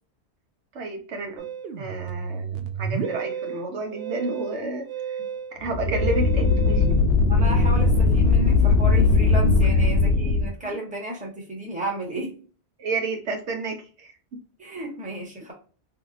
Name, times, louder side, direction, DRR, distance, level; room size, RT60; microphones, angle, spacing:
voice 1, 0.7-1.5 1.8-5.2 5.6-7.0 10.6-10.7 12.8-14.1 14.8-14.9, right 3 dB, 85° right, 4 dB, 1.1 m, -31 dB
Musical instrument, 1.4-8.2, right 7 dB, 70° right, 0.7 m, -33 dB
sound 1, 5.6-10.5, left 3 dB, 75° left, 0.8 m, -19 dB
voice 2, 7.3-12.3 14.6-15.5, right 1 dB, 5° right, -1 dB, 1.0 m, -32 dB
3.4 x 2.8 x 2.5 m, 0.37 s
omnidirectional pair, 1.1 m